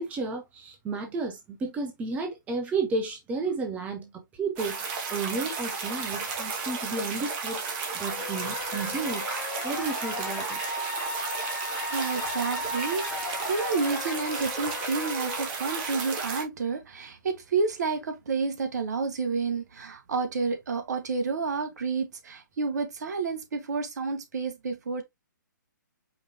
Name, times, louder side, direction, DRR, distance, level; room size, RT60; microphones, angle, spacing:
voice 1, 0.0-4.1 4.4-7.6 7.9-9.3 9.6-10.6, right 3 dB, 15° right, 0.8 m, -32 dB
sound 1, 4.6-16.4, right 4 dB, 30° right, 1.3 m, -33 dB
sound 2, 8.1-15.5, left 3 dB, 40° left, 1.6 m, -36 dB
voice 2, 11.9-25.0, right 4 dB, 55° right, 1.1 m, -30 dB
5.0 x 3.2 x 2.7 m
figure-of-eight pair, 130°, 11 cm